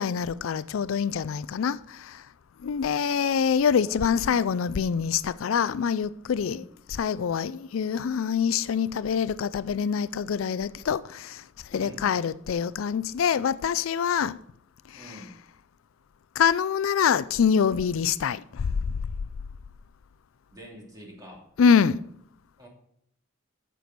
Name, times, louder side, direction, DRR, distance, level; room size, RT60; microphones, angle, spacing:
voice 1, 0.0-2.2 2.6-6.6 7.0-11.4 11.7-14.4 14.9-15.1 16.4-18.7 21.6-22.0, left 7 dB, 85° left, 0.4 m, -25 dB
voice 2, 3.8-4.5 6.3-6.6 11.7-12.1 14.9-15.3 20.5-21.5 22.6-22.7, equal, 20° right, 2.7 m, -46 dB
9.2 x 6.9 x 6.0 m
head